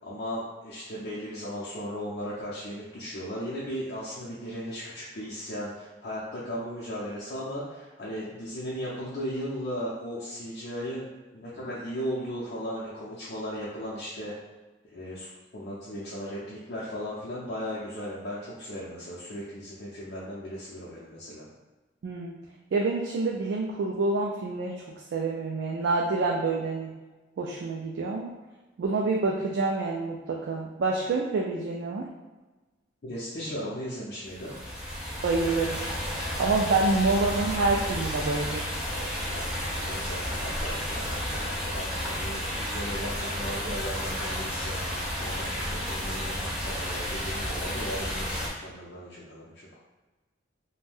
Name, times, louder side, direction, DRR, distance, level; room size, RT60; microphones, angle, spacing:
voice 1, 0.0-14.3 14.9-21.5 33.0-34.7 36.8-36.9 39.2-49.7, equal, 60° left, -8 dB, 0.5 m, -37 dB
voice 2, 22.7-24.8 25.1-26.9 27.4-28.3 28.8-32.1 35.2-35.8 36.4-38.7, right 3 dB, 75° right, -1 dB, 0.3 m, -27 dB
sound 1, 34.3-48.5, equal, 5° right, 0.5 m, -32 dB
2.5 x 2.1 x 3.4 m, 1.2 s
head